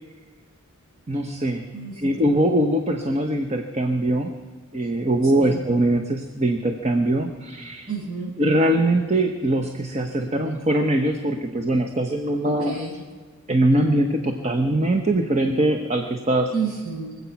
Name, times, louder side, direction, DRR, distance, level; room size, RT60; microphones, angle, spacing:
voice 1, 1.1-1.7 2.0-4.3 4.7-7.9 8.4-12.8 13.5-16.5, right 1 dB, 30° right, 4 dB, 0.9 m, -22 dB
voice 2, 1.7-2.2 5.2-5.5 7.8-8.3 12.4-13.0 16.5-17.2, right 5 dB, 90° right, -9 dB, 6.4 m, -30 dB
24.5 x 8.4 x 5.9 m, 1.5 s
head